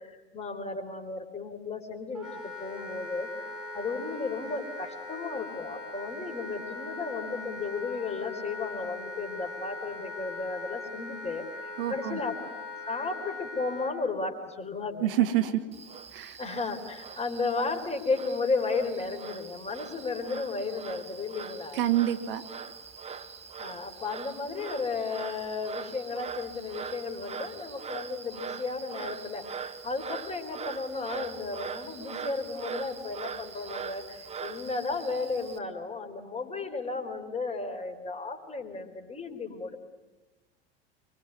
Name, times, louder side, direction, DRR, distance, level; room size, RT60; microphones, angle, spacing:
voice 1, 0.0-12.3 12.9-15.1 16.4-21.8 23.6-39.8, left 4 dB, 20° left, 5 dB, 4.1 m, -34 dB
Wind instrument woodwind instrument, 2.1-13.9, left 2 dB, ahead, 6.5 m, -40 dB
voice 2, 11.8-12.2 15.0-15.6 16.1-16.4 21.7-22.4, right 12 dB, 65° right, 9 dB, 1.6 m, -27 dB
Frog, 15.7-35.6, right 6 dB, 20° right, 1.5 m, -42 dB
25.5 x 24.0 x 9.5 m, 1.1 s
figure-of-eight pair, 80°, 30 cm